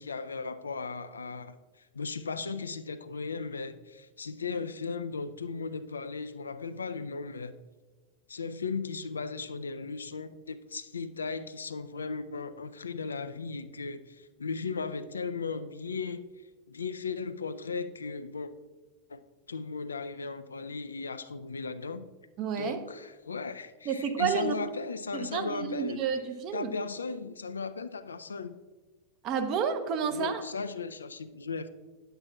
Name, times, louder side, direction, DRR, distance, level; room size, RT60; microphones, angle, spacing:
voice 1, 0.0-7.5 8.3-16.2 16.7-18.5 19.1-19.2 19.5-22.0 22.6-26.0 26.5-28.6 30.1-31.7, left 4 dB, 75° left, 0.3 m, -36 dB
voice 2, 22.4-22.8 23.8-24.6 25.1-26.7 29.2-30.4, right 7 dB, 35° right, 0.7 m, -30 dB
9.6 x 7.8 x 2.3 m
figure-of-eight pair, 90°, 0 cm